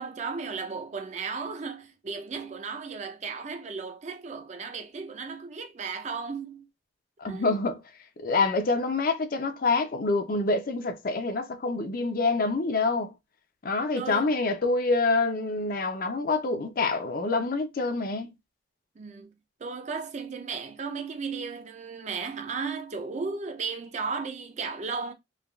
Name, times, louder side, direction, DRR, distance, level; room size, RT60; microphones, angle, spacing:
voice 1, 0.0-6.7 7.2-7.6 14.0-14.3 19.0-19.3 19.6-25.1, right 5 dB, 35° right, 0.4 m, -35 dB
voice 2, 7.2-7.8 8.2-13.1 13.6-18.3, left 3 dB, 45° left, 0.5 m, -26 dB
3.3 x 2.2 x 2.2 m
head